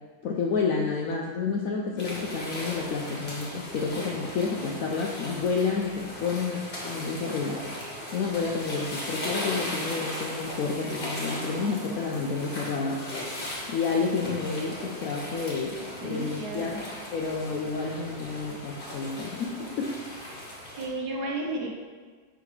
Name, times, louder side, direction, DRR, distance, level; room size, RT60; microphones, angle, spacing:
voice 1, 0.2-7.7 8.1-13.0 13.7-16.8 17.1-19.9, left 4 dB, 70° left, -1 dB, 0.8 m, -30 dB
sound 1, 2.0-20.9, left 1 dB, 35° left, 1.2 m, -37 dB
voice 2, 16.0-16.8 20.8-21.7, right 2 dB, 65° right, -1 dB, 1.4 m, -32 dB
10.0 x 3.5 x 3.2 m, 1.5 s
omnidirectional pair, 2.0 m